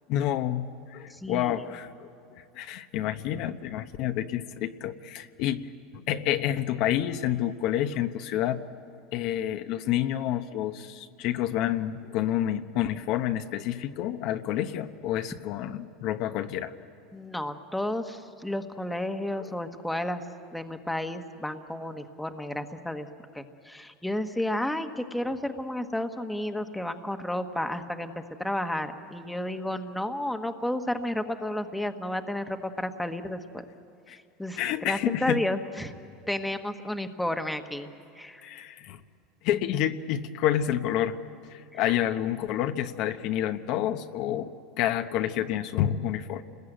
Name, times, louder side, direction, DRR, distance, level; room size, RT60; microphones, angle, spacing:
voice 1, 0.1-5.7 5.9-8.6 9.1-16.7 34.1-34.2 34.6-35.4 38.4-39.0 39.4-41.2 41.5-46.5, left 11 dB, 55° left, 8 dB, 0.9 m, -29 dB
voice 2, 1.1-1.6 17.1-20.2 20.5-23.1 23.3-28.1 28.4-33.6 34.1-34.6 34.9-35.9 36.3-37.9 38.2-38.5 41.7-41.9, left 1 dB, 5° left, 7 dB, 1.2 m, -32 dB
29.0 x 20.5 x 9.0 m, 2.5 s
supercardioid pair, 135°, 0 cm